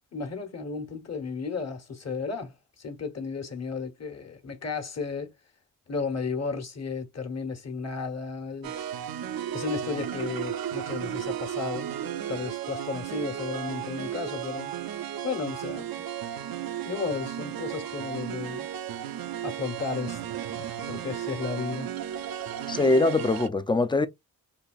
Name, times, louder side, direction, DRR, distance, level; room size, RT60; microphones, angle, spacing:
voice 1, 0.1-5.3 5.9-8.8 9.5-11.9 12.3-14.7 15.2-16.0 16.8-18.7 19.4-20.2 20.5-21.9, left 5 dB, 45° left, 1.2 m, -34 dB
sound 1, 8.6-23.5, right 10 dB, 70° right, 0.5 m, -34 dB
voice 2, 22.7-24.1, left 2 dB, 15° left, 0.4 m, -22 dB
4.0 x 2.9 x 2.3 m
cardioid pair, 70°, 37 cm